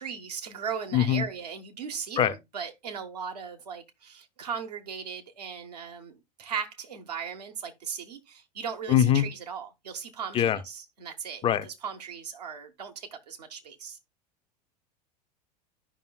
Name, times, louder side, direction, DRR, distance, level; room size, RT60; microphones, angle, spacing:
voice 1, 0.0-14.0, right 6 dB, 70° right, 1.3 m, -38 dB
voice 2, 0.9-1.2 2.2-2.3 8.9-9.3 10.3-10.6 11.4-11.7, left 10 dB, 25° left, 0.6 m, -22 dB
14.0 x 5.4 x 2.3 m
figure-of-eight pair, 80°, 21 cm